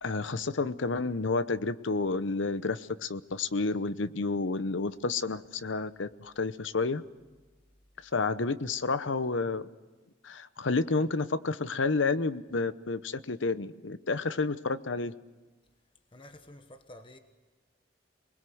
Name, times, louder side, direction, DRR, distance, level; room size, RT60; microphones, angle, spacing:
voice 1, 0.0-7.0 8.1-9.7 10.2-15.1, left 3 dB, 90° left, 0.9 m, -30 dB
voice 2, 16.1-17.2, left 1 dB, 25° left, 1.2 m, -50 dB
27.5 x 21.0 x 7.9 m
head